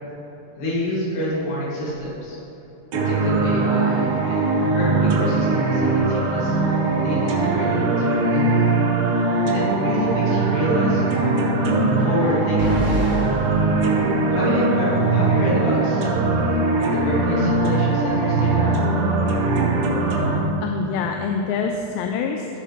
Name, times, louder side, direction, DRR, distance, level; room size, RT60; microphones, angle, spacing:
voice 1, 0.6-2.4 2.9-4.5 4.7-6.6 7.0-8.6 9.5-11.5 12.0-13.2 14.3-16.3 16.8-18.8, left 1 dB, 60° left, -8 dB, 4.0 m, -27 dB
sound 1, 2.9-20.4, right 3 dB, 80° right, 2.9 m, -20 dB
sound 2, 12.6-14.7, equal, 35° left, 1.4 m, -28 dB
voice 2, 20.6-22.6, left 5 dB, 85° left, 3 dB, 2.6 m, -25 dB
16.0 x 6.5 x 3.2 m, 3.0 s
omnidirectional pair, 4.9 m